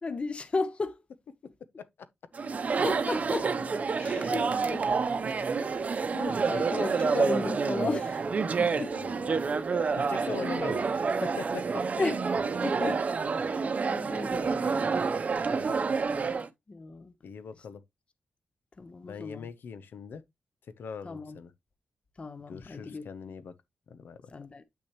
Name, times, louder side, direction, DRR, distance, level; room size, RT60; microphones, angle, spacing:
voice 1, 0.0-1.0 2.8-3.6 4.0-4.9 6.1-9.0 10.4-10.5 12.0-12.2 12.6-13.1 13.3-15.0 15.3-15.4 16.7-17.1 18.8-19.5 21.0-21.4 22.2-23.0 24.3-24.6, left 3 dB, 35° left, 0.9 m, -35 dB
Chatter, 2.3-16.5, right 5 dB, 45° right, 0.8 m, -28 dB
voice 2, 8.7-9.5 9.9-11.8 15.4-15.8 17.2-17.8 19.0-20.2 20.7-21.5 22.5-23.5 23.9-24.2, left 6 dB, 85° left, 0.8 m, -41 dB
8.4 x 6.0 x 3.0 m
wide cardioid pair, 135°, 3 cm